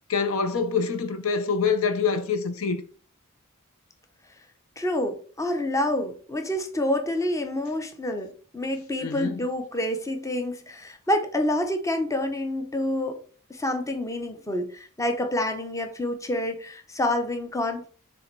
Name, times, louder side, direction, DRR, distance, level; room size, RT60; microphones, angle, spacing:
voice 1, 0.1-2.8 9.0-9.4, left 5 dB, 70° left, 0.7 m, -25 dB
voice 2, 4.8-13.2 13.5-17.9, left 1 dB, 15° left, 0.8 m, -28 dB
7.0 x 3.4 x 4.6 m
head